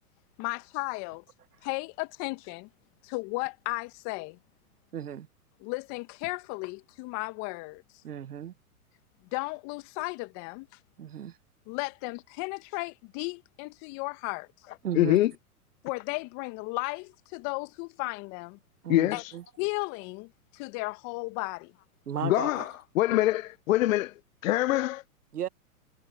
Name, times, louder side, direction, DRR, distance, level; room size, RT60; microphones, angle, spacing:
voice 1, 0.4-1.2 1.6-2.7 3.0-4.4 5.6-7.8 9.3-10.7 11.7-14.5 15.8-18.6 19.1-19.2 19.6-21.7, left 27 dB, 40° left, 1.8 m, -35 dB
voice 2, 4.9-5.3 8.0-8.5 11.0-11.4 14.8-15.2 18.8-19.4 22.1-22.7 25.3-25.5, right 10 dB, 85° right, 1.4 m, -35 dB
voice 3, 14.9-15.3 18.9-19.3 22.2-24.1 24.4-25.0, left 16 dB, 60° left, 0.6 m, -24 dB
hypercardioid pair, 115°, 45 cm